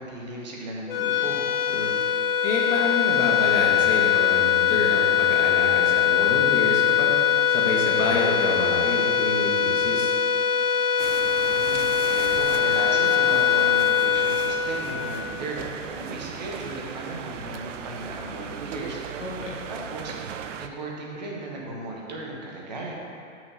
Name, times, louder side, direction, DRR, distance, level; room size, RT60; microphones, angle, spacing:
voice 1, 0.0-1.4 11.4-19.0 19.7-22.9, right 2 dB, 35° right, -2 dB, 0.9 m, -36 dB
sound 1, 0.9-15.5, left 8 dB, 50° left, 0.5 m, -22 dB
voice 2, 1.7-7.2 7.5-10.2 19.2-19.6, left 2 dB, 75° left, -2 dB, 1.5 m, -28 dB
sound 2, 11.0-20.7, right 8 dB, 75° right, 0.5 m, -37 dB
8.0 x 5.8 x 2.8 m, 2.5 s
hypercardioid pair, 180°, 38 cm